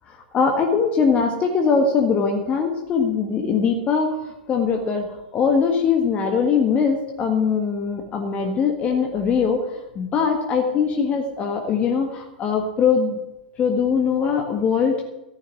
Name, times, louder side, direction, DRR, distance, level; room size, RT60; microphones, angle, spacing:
voice 1, 0.1-5.1 5.3-13.2 13.6-15.0, left 6 dB, 25° left, 3 dB, 1.6 m, -21 dB
14.0 x 6.4 x 9.5 m, 0.96 s
figure-of-eight pair, 100°, 5 cm